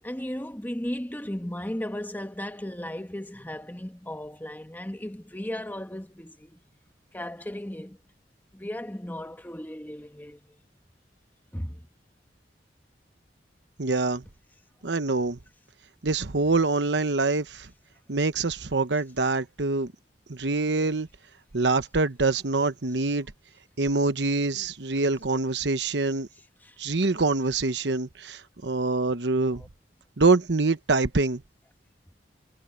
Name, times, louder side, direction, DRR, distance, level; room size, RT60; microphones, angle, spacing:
voice 1, 0.0-6.6 7.1-8.0 8.5-10.6 11.5-11.9 26.6-26.8 29.5-29.7, left 1 dB, 10° left, 1.7 m, -36 dB
voice 2, 13.8-14.2 14.8-15.4 16.0-17.7 18.1-19.9 20.3-21.1 21.5-23.3 23.8-26.3 26.8-29.6 30.2-31.4, right 3 dB, 80° right, 1.1 m, -25 dB
head